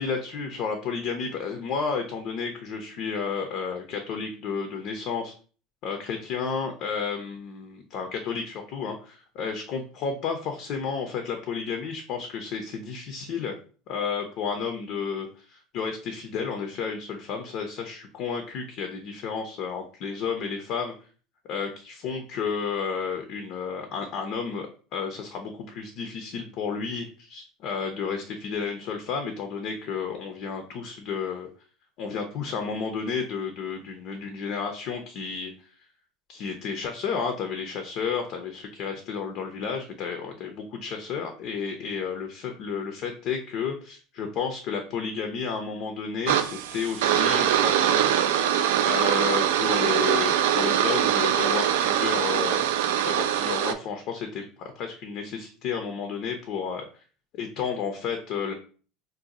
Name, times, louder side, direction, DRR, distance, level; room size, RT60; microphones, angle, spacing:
voice 1, 0.0-5.3 5.8-13.6 13.9-20.9 21.4-31.5 32.0-35.5 36.3-48.1 48.8-52.7 53.1-57.0 57.3-58.5, left 6 dB, 60° left, 5 dB, 0.5 m, -32 dB
sound 1, 46.3-53.7, right 10 dB, 85° right, 0.3 m, -23 dB
2.6 x 2.2 x 4.0 m, 0.40 s
hypercardioid pair, 90°, 0 cm